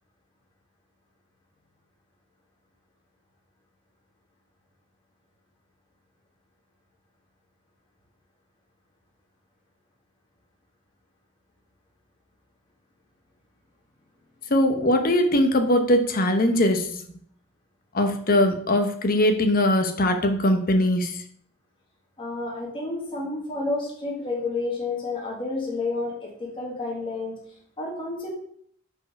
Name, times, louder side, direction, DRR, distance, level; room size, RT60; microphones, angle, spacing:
voice 1, 14.5-16.9 17.9-21.2, left 1 dB, 45° left, 6 dB, 0.9 m, -21 dB
voice 2, 22.2-27.4 27.8-28.3, left 3 dB, 25° left, -3 dB, 1.7 m, -30 dB
5.6 x 4.6 x 5.3 m, 0.62 s
head